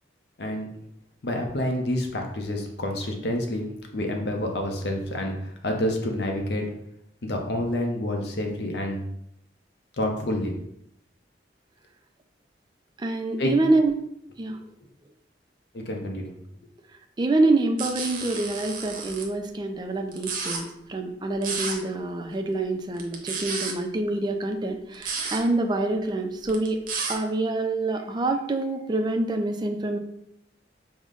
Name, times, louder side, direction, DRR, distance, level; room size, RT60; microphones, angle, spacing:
voice 1, 1.2-3.6 3.9-6.6 7.2-9.0 10.0-10.6 13.4-13.5 15.7-16.3, left 1 dB, 65° left, 2 dB, 0.6 m, -28 dB
voice 2, 13.0-13.9 14.4-14.6 17.2-26.8 27.1-30.0, right 2 dB, 25° right, 5 dB, 0.3 m, -26 dB
sound 1, 17.8-19.2 20.1-20.6 21.4-21.8 23.0-23.7 24.9-25.4 26.5-27.2, right 5 dB, 50° right, 0.7 m, -31 dB
5.0 x 2.1 x 3.7 m, 0.77 s
head